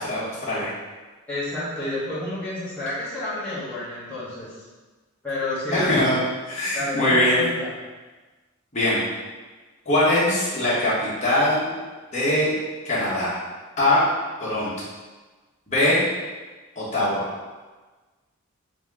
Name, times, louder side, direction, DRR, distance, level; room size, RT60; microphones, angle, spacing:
voice 1, 0.0-0.7 5.7-6.2 6.5-7.4 8.7-9.0 9.8-11.7 12.1-12.5 12.8-13.3 13.8-14.0 14.4-14.7 15.7-16.0 16.7-17.3, left 1 dB, 30° left, -9 dB, 1.4 m, -22 dB
voice 2, 1.3-4.5 5.2-6.0 6.7-7.7, left 2 dB, 5° left, -12 dB, 1.1 m, -29 dB
4.1 x 2.9 x 3.6 m, 1.3 s
head